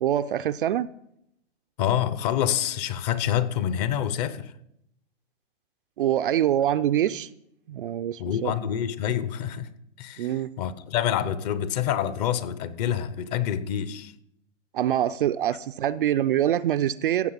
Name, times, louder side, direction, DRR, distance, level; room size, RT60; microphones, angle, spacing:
voice 1, 0.0-0.9 6.0-7.3 7.7-8.5 10.2-10.5 14.7-17.3, right 11 dB, 45° right, 0.4 m, -24 dB
voice 2, 1.8-4.5 8.2-9.7 10.0-14.1, left 10 dB, 35° left, 0.8 m, -27 dB
15.5 x 7.3 x 5.7 m
hypercardioid pair, 140°, 37 cm